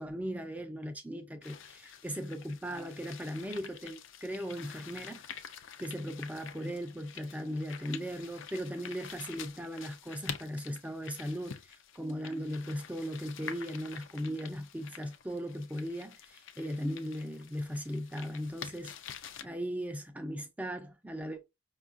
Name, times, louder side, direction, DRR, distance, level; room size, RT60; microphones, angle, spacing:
voice 1, 0.0-5.5 5.8-18.9 19.4-21.4, equal, 5° right, 0.3 m, -38 dB
sound 1, 1.4-19.4, left 8 dB, 60° left, 0.4 m, -48 dB
5.3 x 2.3 x 2.4 m
head